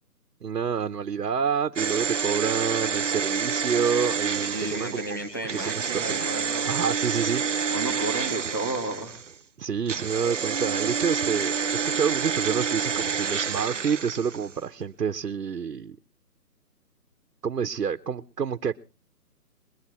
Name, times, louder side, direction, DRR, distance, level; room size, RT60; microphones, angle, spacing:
voice 1, 0.4-6.2 6.6-7.4 9.6-16.0 17.4-18.8, right 6 dB, 70° right, 1.2 m, -28 dB
sound 1, 1.8-9.3 9.9-14.6 14.8-14.9, right 6 dB, 50° right, 0.6 m, -28 dB
voice 2, 4.4-6.7 7.7-9.2, right 2 dB, 15° left, 0.8 m, -32 dB
22.5 x 8.1 x 4.4 m
hypercardioid pair, 170°, 48 cm